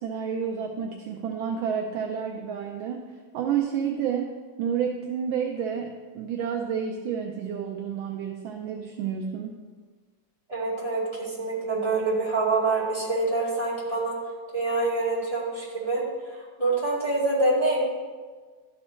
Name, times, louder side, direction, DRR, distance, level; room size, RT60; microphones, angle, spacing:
voice 1, 0.0-4.3 4.6-9.6, right 7 dB, 80° right, 2 dB, 1.4 m, -30 dB
voice 2, 10.5-14.2 14.5-16.0 16.3-17.9, right 2 dB, 15° right, -8 dB, 2.3 m, -26 dB
12.5 x 4.3 x 4.3 m, 1.4 s
omnidirectional pair, 2.2 m